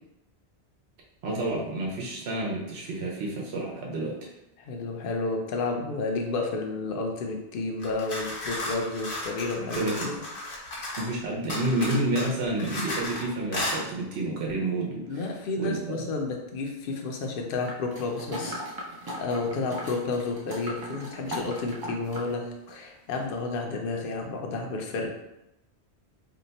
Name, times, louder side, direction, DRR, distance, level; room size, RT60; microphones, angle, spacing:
voice 1, 1.2-4.3 9.7-10.1 11.0-15.3 15.6-16.0, right 2 dB, 75° right, -2 dB, 1.0 m, -29 dB
voice 2, 4.6-10.6 15.1-18.6 19.2-25.1, left 3 dB, 60° left, 2 dB, 0.7 m, -31 dB
sound 1, 7.8-11.1 11.5-13.2 13.5-13.8, left 1 dB, 85° left, 1.2 m, -34 dB
sound 2, 17.7-22.3 22.7-22.8, equal, 35° right, 0.4 m, -38 dB
2.7 x 2.2 x 4.0 m, 0.90 s
omnidirectional pair, 1.1 m